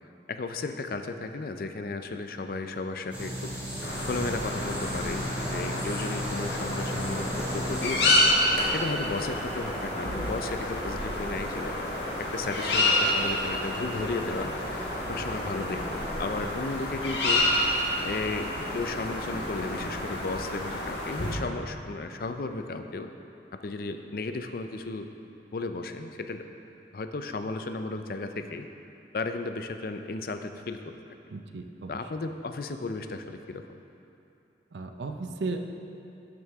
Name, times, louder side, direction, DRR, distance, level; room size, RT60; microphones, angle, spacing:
voice 1, 0.3-3.5 4.1-7.3 7.5-8.3 8.7-11.8 12.2-14.5 15.1-15.8 16.2-17.5 18.0-23.1 23.5-25.1 25.5-26.4 26.9-28.7 29.1-30.9 31.9-33.6, left 3 dB, 55° left, 7 dB, 0.4 m, -34 dB
sound 1, 3.1-8.2, equal, 10° right, 2.0 m, -35 dB
sound 2, 3.8-21.3, left 1 dB, 75° left, 1.4 m, -29 dB
sound 3, 6.1-16.4, equal, 20° left, 0.9 m, -40 dB
voice 2, 31.3-31.9 34.7-35.6, right 3 dB, 85° right, 6 dB, 0.6 m, -35 dB
12.0 x 6.2 x 3.5 m, 2.8 s
head